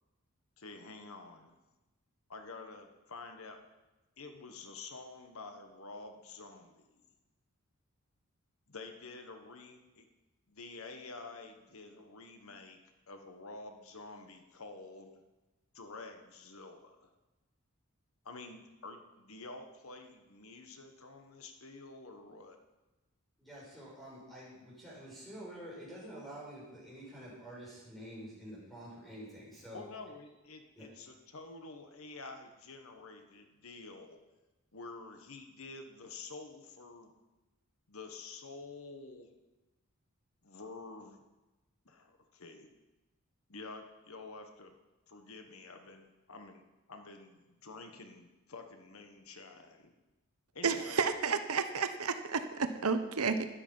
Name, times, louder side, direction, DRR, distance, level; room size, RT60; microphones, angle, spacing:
voice 1, 0.6-1.5 2.3-3.6 4.2-6.9 8.7-10.1 10.5-12.8 13.1-15.1 15.7-17.1 18.2-22.6 29.7-34.2 34.7-37.1 37.9-39.3 40.4-41.2 41.8-42.7 43.5-44.7 45.1-46.6 46.9-49.9 50.5-51.0, left 3 dB, 75° left, 5 dB, 1.2 m, -49 dB
voice 2, 23.4-29.8 30.8-31.0, equal, ahead, -6 dB, 5.8 m, -48 dB
voice 3, 50.6-53.5, right 5 dB, 85° right, 8 dB, 0.9 m, -31 dB
12.5 x 11.5 x 5.5 m, 1.1 s
head